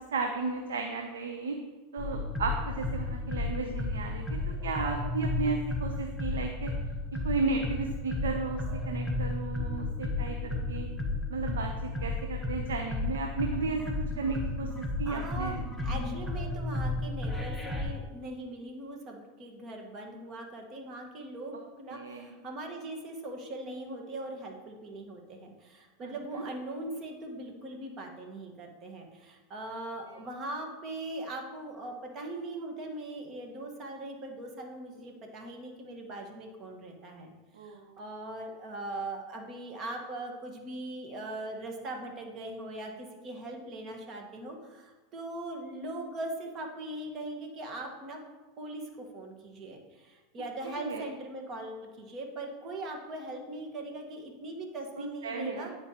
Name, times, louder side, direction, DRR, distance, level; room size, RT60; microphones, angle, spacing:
voice 1, 0.1-1.6 1.9-6.7 7.2-10.9 11.3-11.7 12.0-15.6 21.9-22.3 26.0-26.1 37.5-38.0 50.6-51.0 55.0-55.7, right 4 dB, 85° right, 3 dB, 0.6 m, -34 dB
sound 1, 2.0-17.8, left 2 dB, 5° right, 1.2 m, -33 dB
voice 2, 15.0-37.3 37.6-48.2 48.6-55.7, right 2 dB, 40° right, 2 dB, 1.4 m, -40 dB
9.5 x 4.4 x 2.9 m, 1.2 s
hypercardioid pair, 100°, 0 cm